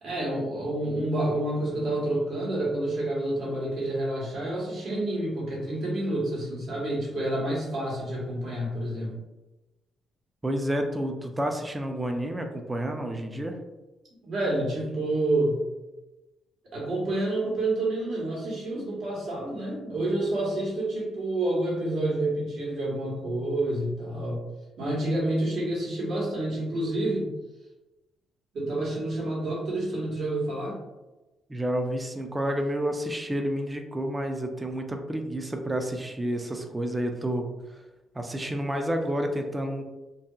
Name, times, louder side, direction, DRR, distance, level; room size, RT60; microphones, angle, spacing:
voice 1, 0.0-9.2 14.2-15.6 16.6-24.4 24.8-27.3 28.5-30.8, right 1 dB, 65° right, -4 dB, 1.2 m, -28 dB
voice 2, 10.4-13.6 31.5-37.8 38.1-39.8, equal, 15° right, 4 dB, 0.4 m, -30 dB
2.8 x 2.6 x 2.3 m, 1.1 s
cardioid pair, 90°, 0 cm